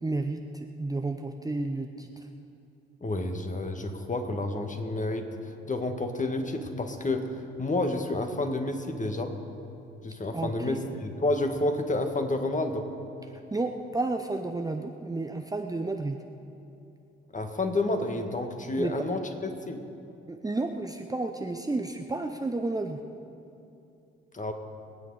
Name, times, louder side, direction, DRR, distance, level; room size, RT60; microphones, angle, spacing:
voice 1, 0.0-2.1 10.3-10.8 13.5-16.2 18.8-19.0 20.3-23.0, right 2 dB, 10° right, 5 dB, 0.8 m, -31 dB
voice 2, 3.0-5.3 5.7-9.3 10.0-12.9 17.3-19.8 24.3-24.5, left 2 dB, 25° left, 5 dB, 1.8 m, -30 dB
22.0 x 9.4 x 4.9 m, 2.7 s
figure-of-eight pair, 45°, 29 cm